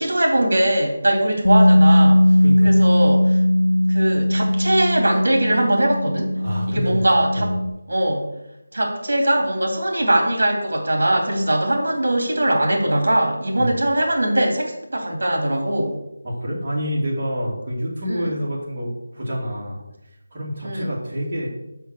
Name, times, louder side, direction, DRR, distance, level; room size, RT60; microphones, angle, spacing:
voice 1, 0.0-2.3 2.6-3.4 3.9-6.3 6.7-7.5 7.9-8.3 8.7-16.0 18.0-18.3 20.6-20.9, right 1 dB, 65° right, 2 dB, 2.7 m, -21 dB
Bass guitar, 1.4-7.7, left 1 dB, 70° left, 0.9 m, -18 dB
voice 2, 2.4-2.8 6.4-7.1 7.3-7.6 13.5-13.7 16.2-19.8 20.3-21.5, equal, 30° right, -5 dB, 2.6 m, -27 dB
5.6 x 5.2 x 6.4 m, 0.89 s
figure-of-eight pair, 170°, 0 cm